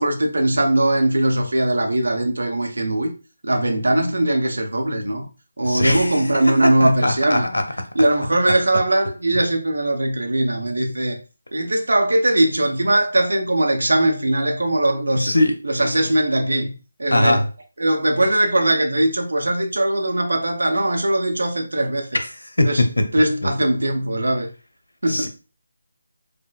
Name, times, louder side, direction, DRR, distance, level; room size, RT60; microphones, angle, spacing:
voice 1, 0.0-3.1 3.4-5.3 5.6-7.5 7.9-11.2 11.5-15.3 15.6-16.7 17.0-17.4 17.8-22.2 22.6-22.8 23.1-24.5 25.0-25.3, right 1 dB, 65° right, 0.8 m, -20 dB
voice 2, 5.7-6.2 6.8-7.6 15.2-15.5 17.1-17.5 22.6-22.7 23.4-23.5 25.1-25.3, left 1 dB, 75° left, 0.6 m, -20 dB
5.0 x 2.1 x 2.2 m
figure-of-eight pair, 155°, 0 cm